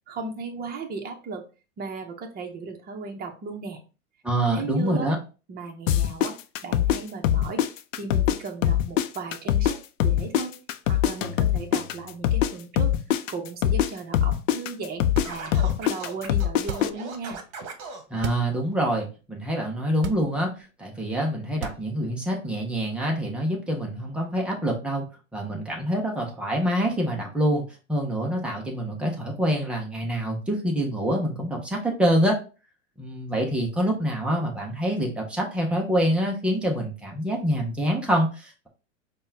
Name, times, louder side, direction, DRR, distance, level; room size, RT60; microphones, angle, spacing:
voice 1, 0.1-1.4 1.8-3.8 4.5-5.1 5.5-6.4 6.6-7.6 8.0-10.5 10.9-12.9 13.3-17.4, right 4 dB, 25° right, 3 dB, 0.7 m, -36 dB
voice 2, 4.2-5.2 18.1-20.5 20.8-25.1 25.3-27.6 27.9-32.4 33.0-38.7, equal, 5° right, -1 dB, 0.3 m, -26 dB
sound 1, 5.9-8.4 8.6-12.5 12.8-16.9, left 11 dB, 70° left, 0.5 m, -22 dB
sound 2, 15.1-15.7 16.6-17.1 18.1-18.6 19.0-19.1 19.9-20.6 21.5-22.2, right 6 dB, 85° right, 0.6 m, -36 dB
Scratching (performance technique), 15.2-18.0, right 4 dB, 40° right, 1.1 m, -38 dB
5.4 x 2.2 x 2.6 m, 0.33 s
hypercardioid pair, 125°, 40 cm